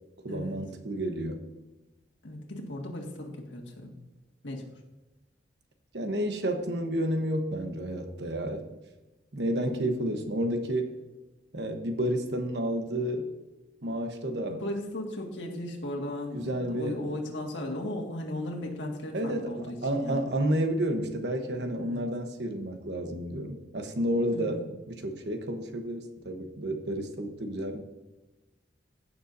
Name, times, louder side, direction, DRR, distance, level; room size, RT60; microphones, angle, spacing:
voice 1, 0.2-1.5 5.9-8.6 9.3-10.9 11.5-13.3 13.8-14.6 16.3-17.0 19.1-24.6 24.9-27.8, right 1 dB, 65° right, 6 dB, 1.1 m, -31 dB
voice 2, 2.2-4.0 4.4-4.8 14.5-20.3 21.8-22.0 24.3-24.7, left 1 dB, 80° left, 0 dB, 1.9 m, -36 dB
16.0 x 6.9 x 2.7 m, 1.1 s
head